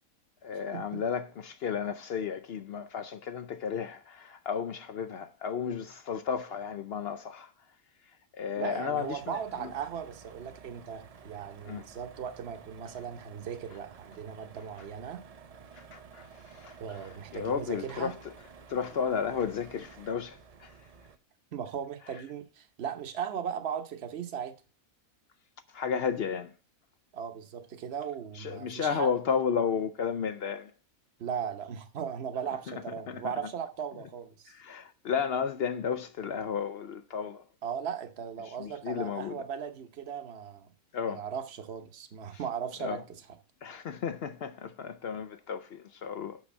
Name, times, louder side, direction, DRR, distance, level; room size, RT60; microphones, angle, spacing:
voice 1, 0.4-7.5 8.0-9.7 11.6-11.9 15.7-18.3 18.7-20.9 25.7-26.5 28.3-30.7 32.7-33.5 34.5-37.4 38.4-39.4 40.9-41.2 42.8-43.0 43.6-46.4, left 6 dB, 60° left, 0.6 m, -33 dB
voice 2, 8.6-15.2 16.8-18.1 21.5-24.5 27.1-29.1 31.2-34.5 37.6-40.7 41.1-43.0, right 8 dB, 50° right, 1.1 m, -37 dB
sound 1, 9.0-21.2, right 6 dB, 75° right, 0.3 m, -52 dB
6.3 x 6.1 x 7.1 m
omnidirectional pair, 1.5 m